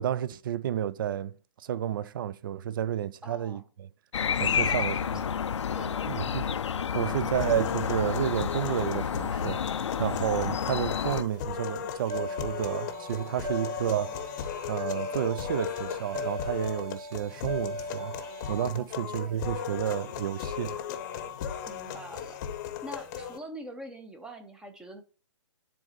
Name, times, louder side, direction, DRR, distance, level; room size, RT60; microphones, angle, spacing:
voice 1, 0.0-3.9 4.3-4.9 6.1-6.5 6.9-14.2 14.7-20.8, right 10 dB, 45° right, 0.4 m, -31 dB
voice 2, 3.2-3.6 4.5-6.3 18.7-19.4 21.7-22.4 22.8-25.0, right 1 dB, 5° right, 0.7 m, -45 dB
sound 1, 4.1-11.2, left 7 dB, 70° left, 0.4 m, -30 dB
sound 2, 7.4-23.4, left 8 dB, 35° left, 0.8 m, -37 dB
sound 3, 12.1-18.7, left 2 dB, 25° right, 1.5 m, -38 dB
10.5 x 4.0 x 2.7 m
hypercardioid pair, 135°, 16 cm